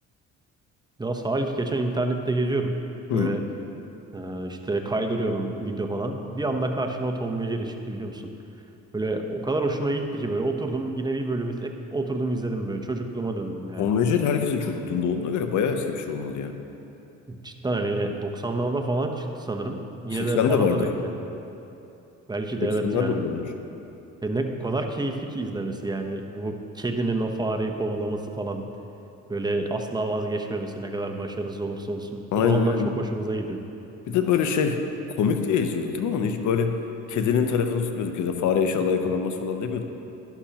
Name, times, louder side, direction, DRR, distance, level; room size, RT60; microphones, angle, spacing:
voice 1, 1.0-2.7 3.1-3.4 4.1-8.2 8.9-13.9 17.3-21.3 22.3-23.2 24.2-28.7 29.3-33.6, right 2 dB, 15° right, 3 dB, 0.9 m, -28 dB
voice 2, 13.8-16.5 20.1-20.9 22.8-23.5 32.3-33.0 34.1-34.8 35.2-36.8 37.1-39.8, left 6 dB, 75° left, 6 dB, 0.8 m, -24 dB
11.5 x 11.5 x 2.9 m, 2.8 s
cardioid pair, 90°, 30 cm